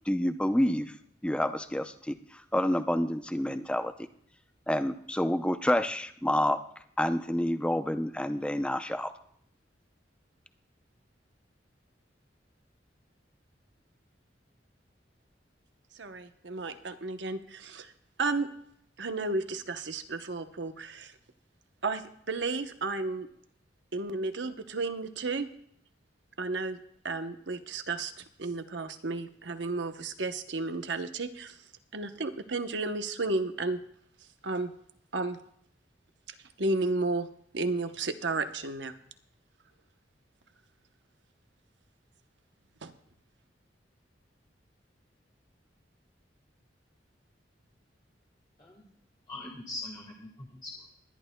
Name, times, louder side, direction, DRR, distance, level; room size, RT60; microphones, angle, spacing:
voice 1, 0.1-0.9 1.2-2.2 2.5-3.9 4.7-6.6 7.0-9.1, left 1 dB, 5° left, 9 dB, 0.5 m, -28 dB
voice 2, 16.0-17.9 18.2-18.5 19.0-21.1 21.8-23.3 23.9-25.5 26.4-26.8 27.0-28.1 28.4-31.5 31.9-33.8 34.4-34.7 35.1-35.4 36.6-37.3 37.5-38.9 42.8-42.9, right 3 dB, 75° right, 8 dB, 0.9 m, -32 dB
voice 3, 49.3-50.9, left 2 dB, 25° left, -2 dB, 1.6 m, -42 dB
21.0 x 11.5 x 2.2 m, 0.67 s
head